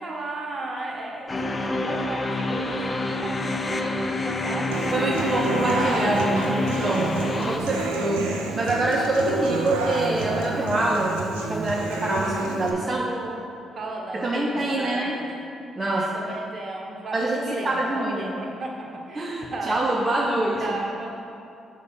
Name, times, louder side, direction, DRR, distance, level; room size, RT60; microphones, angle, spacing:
voice 1, 0.0-5.4 7.5-8.1 12.9-13.4 13.7-15.3 15.8-19.9 20.5-21.1, right 2 dB, 50° right, -1 dB, 1.2 m, -35 dB
sound 1, 1.3-7.6, left 2 dB, 30° left, 0.6 m, -27 dB
Human voice / Acoustic guitar, 4.7-12.7, right 3 dB, 90° right, 0.6 m, -29 dB
voice 2, 4.9-8.3 8.6-13.1 14.1-15.1 15.8-16.1 17.1-18.4 19.2-20.8, right 2 dB, 30° right, -3 dB, 0.8 m, -25 dB
6.5 x 4.2 x 5.6 m, 2.7 s
hypercardioid pair, 50°, 0 cm